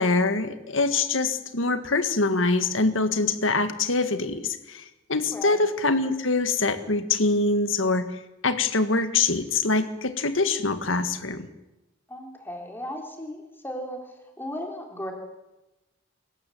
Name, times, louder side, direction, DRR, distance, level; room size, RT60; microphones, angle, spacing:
voice 1, 0.0-4.8 5.1-8.1 8.4-11.5, left 3 dB, 80° left, 10 dB, 1.9 m, -24 dB
voice 2, 5.3-5.6 12.1-15.1, equal, 10° left, 2 dB, 3.8 m, -36 dB
24.5 x 14.0 x 9.3 m, 1.0 s
head